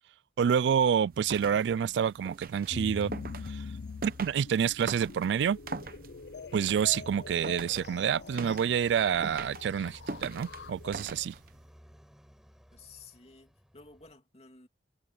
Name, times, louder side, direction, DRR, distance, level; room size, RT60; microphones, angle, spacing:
voice 1, 0.4-3.1 3.4-3.6 4.0-5.6 6.5-11.3, right 8 dB, 80° right, 0.3 m, -28 dB
sound 1, 1.1-11.6, right 3 dB, 55° right, 0.9 m, -43 dB
sound 2, 1.6-14.1, equal, 5° right, 4.7 m, -58 dB
sound 3, 2.7-11.3, left 5 dB, 70° left, 0.5 m, -44 dB
voice 2, 12.7-14.7, left 4 dB, 35° left, 2.9 m, -54 dB
head